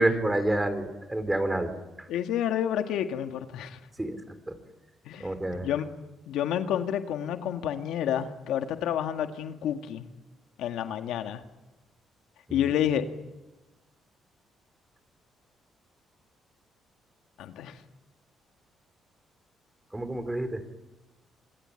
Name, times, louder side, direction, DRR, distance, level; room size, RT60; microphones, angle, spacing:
voice 1, 0.0-1.7 2.0-2.1 4.0-4.2 4.5-4.6 5.2-5.7 12.5-12.7 19.9-20.6, right 1 dB, 10° right, 10 dB, 4.0 m, -28 dB
voice 2, 2.1-3.8 5.1-5.9 6.3-10.1 10.6-11.4 12.5-13.1 17.4-17.8, left 10 dB, 85° left, 7 dB, 1.8 m, -29 dB
26.5 x 22.0 x 9.0 m, 1.1 s
cardioid pair, 90°, 0 cm